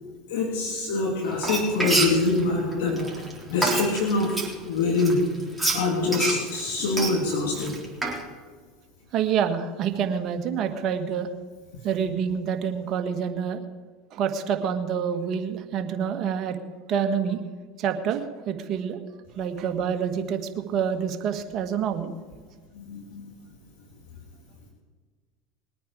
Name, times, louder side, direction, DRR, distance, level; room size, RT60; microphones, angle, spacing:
voice 1, 0.3-3.2 3.5-4.3 4.7-5.2 5.7-7.7 22.8-23.3, left 3 dB, 75° left, -1 dB, 3.1 m, -25 dB
Frying (food), 1.3-4.5 5.0-8.2, right 2 dB, 5° right, 3.8 m, -27 dB
voice 2, 9.1-11.3 11.8-13.6 14.1-16.6 16.9-17.4 17.8-19.0 19.4-22.1, right 7 dB, 50° right, 6 dB, 1.6 m, -27 dB
21.5 x 9.2 x 4.9 m, 1.5 s
hypercardioid pair, 90°, 0 cm